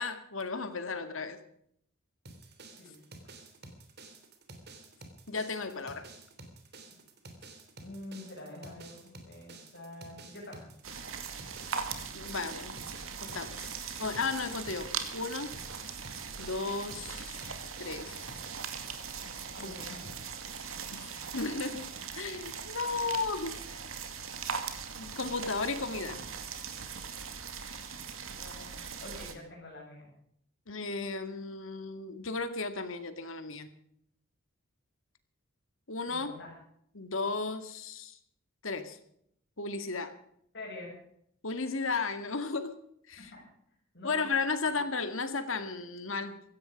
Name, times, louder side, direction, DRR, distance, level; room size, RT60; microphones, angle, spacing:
voice 1, 0.0-1.4 5.3-6.1 12.1-12.8 13.2-13.7 14.0-15.6 16.4-18.4 19.6-19.7 20.9-21.9 22.1-23.8 24.9-26.2 30.7-33.7 35.9-36.3 36.9-38.2 38.6-39.0 39.6-40.1 41.4-42.8 43.1-43.3 44.0-46.4, left 4 dB, 75° left, 9 dB, 2.0 m, -34 dB
sound 1, 2.3-18.8, right 2 dB, 50° right, 3.1 m, -51 dB
voice 2, 7.8-10.7 19.5-20.1 28.4-30.1 36.1-36.5 40.5-40.9 43.1-43.4 43.9-44.3, left 2 dB, 55° left, -2 dB, 7.2 m, -46 dB
sound 2, 10.8-29.3, right 6 dB, 80° right, 2.3 m, -40 dB
16.5 x 15.5 x 5.2 m, 0.70 s
head